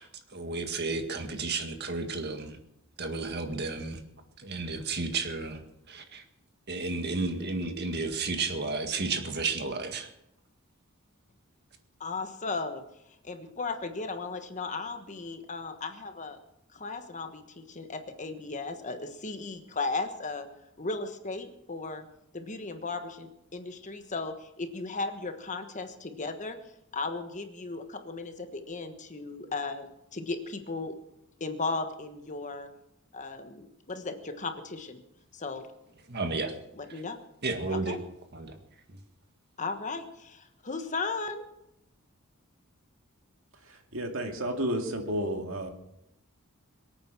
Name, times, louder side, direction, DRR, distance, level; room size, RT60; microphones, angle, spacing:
voice 1, 0.0-2.6 3.0-4.0 4.4-6.2 6.7-10.1 36.1-36.5 36.9-37.0 37.4-38.0 38.3-38.6 38.9-39.0, right 3 dB, 50° right, 6 dB, 1.8 m, -32 dB
voice 2, 12.0-12.8 13.2-16.4 16.7-20.5 20.8-22.1 22.3-26.6 26.9-30.9 31.4-32.7 33.1-35.0 35.3-35.7 36.8-37.2 37.7-38.0 39.6-41.4, left 3 dB, 35° left, 7 dB, 1.3 m, -36 dB
voice 3, 43.7-45.7, right 1 dB, 65° right, 4 dB, 2.3 m, -32 dB
23.5 x 9.0 x 6.2 m, 0.83 s
head